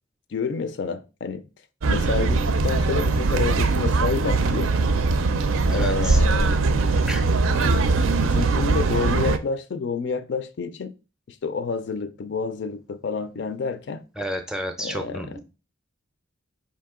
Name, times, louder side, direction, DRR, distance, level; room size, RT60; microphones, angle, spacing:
voice 1, 0.3-1.5 1.9-4.8 5.7-6.6 7.5-7.8 8.2-10.9 11.3-14.0 14.8-15.4, left 5 dB, 60° left, 0.4 m, -29 dB
sound 1, 1.8-9.4, right 3 dB, 85° right, 0.4 m, -21 dB
voice 2, 5.7-6.2 7.1-7.2 14.2-15.4, equal, 5° right, 0.4 m, -31 dB
5.0 x 2.8 x 3.6 m
head